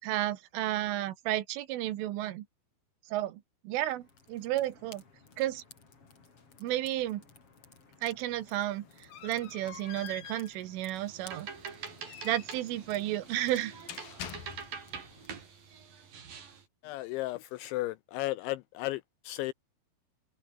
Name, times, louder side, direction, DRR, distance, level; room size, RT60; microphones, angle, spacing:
voice 1, 0.0-2.5 3.1-5.0 5.4-5.6 6.6-7.2 8.0-11.5 12.2-13.7, right 14 dB, 75° right, 3.9 m, -32 dB
sound 1, 3.7-15.3, left 4 dB, 30° left, 4.7 m, -57 dB
sound 2, 8.3-15.0, left 10 dB, 55° left, 3.4 m, -48 dB
sound 3, 11.0-16.6, right 6 dB, 45° right, 5.1 m, -45 dB
voice 2, 16.8-19.5, left 18 dB, 80° left, 2.7 m, -34 dB
omnidirectional pair, 5.9 m